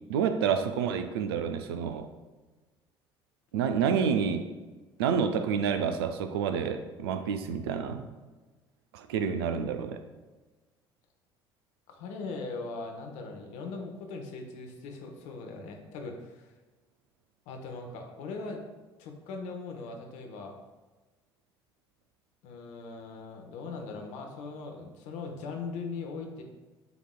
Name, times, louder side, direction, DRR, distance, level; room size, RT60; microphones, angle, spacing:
voice 1, 0.1-2.1 3.5-4.5 5.0-8.1 8.9-10.0, right 7 dB, 70° right, 8 dB, 0.4 m, -28 dB
voice 2, 11.9-16.5 17.5-18.6 19.0-20.6 22.4-26.4, left 4 dB, 60° left, 3 dB, 0.8 m, -40 dB
7.9 x 2.9 x 2.2 m, 1.2 s
figure-of-eight pair, 55°, 13 cm